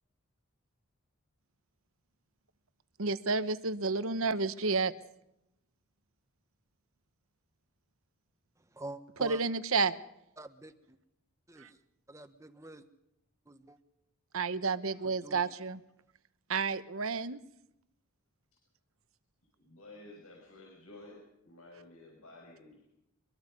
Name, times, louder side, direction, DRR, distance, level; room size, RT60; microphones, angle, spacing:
voice 1, 3.0-4.9 9.2-10.0 11.6-11.7 14.3-15.8 16.5-17.4, right 4 dB, 70° right, 13 dB, 1.1 m, -30 dB
voice 2, 8.7-9.4 10.4-11.0 11.5-11.8 12.1-12.8 13.5-13.8 15.0-15.4, right 1 dB, 15° right, 9 dB, 1.3 m, -47 dB
voice 3, 19.6-22.8, left 2 dB, 85° left, -1 dB, 6.5 m, -53 dB
24.0 x 23.0 x 5.4 m, 0.82 s
head